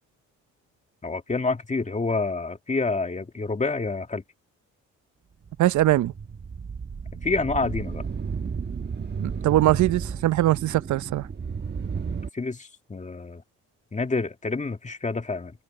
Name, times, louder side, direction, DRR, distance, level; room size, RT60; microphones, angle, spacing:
voice 1, 1.0-4.2 7.2-8.0 12.3-13.4 13.9-15.5, left 3 dB, 25° left, 2.4 m, -28 dB
sound 1, 5.4-12.3, right 6 dB, 35° right, 1.4 m, -33 dB
voice 2, 5.6-6.1 9.2-11.3, right 14 dB, 70° right, 0.8 m, -21 dB
cardioid pair, 90°, 30 cm